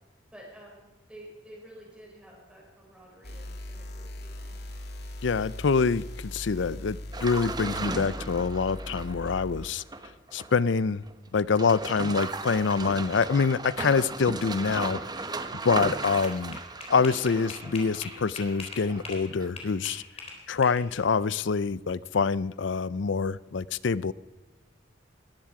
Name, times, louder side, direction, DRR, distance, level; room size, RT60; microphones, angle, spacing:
voice 1, 0.3-4.6, right 1 dB, 5° right, -3 dB, 5.8 m, -50 dB
sound 1, 3.2-9.7, left 1 dB, 60° left, 1.9 m, -40 dB
voice 2, 5.2-9.8 10.3-11.0 11.3-15.0 15.6-16.6 16.9-20.0 20.5-24.1, left 5 dB, 75° left, 19 dB, 0.5 m, -26 dB
sound 2, 7.1-10.8 11.1-11.2 11.5-19.1 19.4-19.5, right 3 dB, 20° right, 0.9 m, -36 dB
sound 3, 15.6-19.2 19.6-21.1, left 4 dB, 30° left, 3.8 m, -41 dB
19.5 x 15.0 x 4.8 m, 1.2 s
head